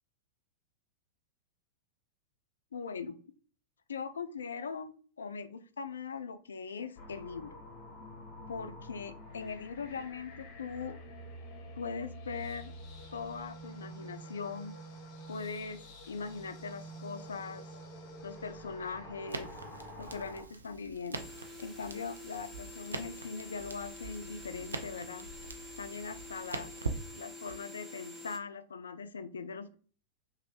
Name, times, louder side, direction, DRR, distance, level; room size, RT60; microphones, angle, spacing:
voice 1, 2.7-3.2 3.9-7.5 8.5-11.0 11.8-12.7 13.1-14.8 15.3-17.7 18.2-19.5 20.0-21.2 21.6-25.3 25.8-26.7 27.1-29.7, left 5 dB, 75° left, 11 dB, 0.3 m, -41 dB
sound 1, 7.0-20.4, equal, 40° left, 0.8 m, -48 dB
Crackle, 19.3-27.6, right 3 dB, 80° right, 0.4 m, -43 dB
sound 2, 21.1-28.4, left 2 dB, 5° right, 0.6 m, -48 dB
3.1 x 2.5 x 2.8 m, 0.41 s
figure-of-eight pair, 95°, 0 cm